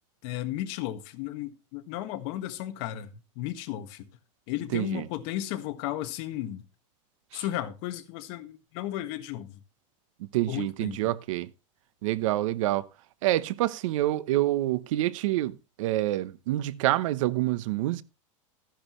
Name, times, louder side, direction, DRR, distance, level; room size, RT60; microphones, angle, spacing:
voice 1, 0.2-4.1 4.5-6.6 7.3-9.6 10.5-11.1, left 13 dB, 55° left, 1.7 m, -34 dB
voice 2, 4.7-5.0 7.3-7.4 10.2-11.5 12.0-12.9 13.2-18.0, right 15 dB, 70° right, 0.9 m, -27 dB
14.5 x 10.5 x 3.2 m
supercardioid pair, 140°, 17 cm